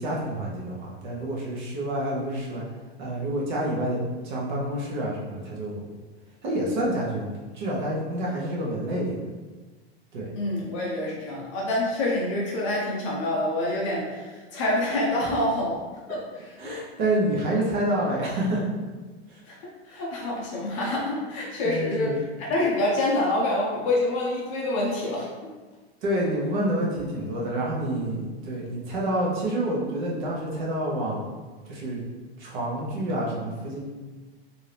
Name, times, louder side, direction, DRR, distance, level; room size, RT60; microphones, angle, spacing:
voice 1, 0.0-2.6 3.0-5.9 6.4-9.2 10.1-10.3 16.6-18.7 19.3-19.4 21.6-22.2 26.0-31.3 31.7-32.0 32.4-33.8, right 1 dB, 45° right, -4 dB, 1.0 m, -28 dB
voice 2, 10.3-15.8 16.1-16.5 19.5-19.6 19.9-22.1 22.5-25.3, left 1 dB, 30° left, -4 dB, 0.5 m, -26 dB
3.5 x 2.7 x 3.3 m, 1.3 s
supercardioid pair, 170°, 33 cm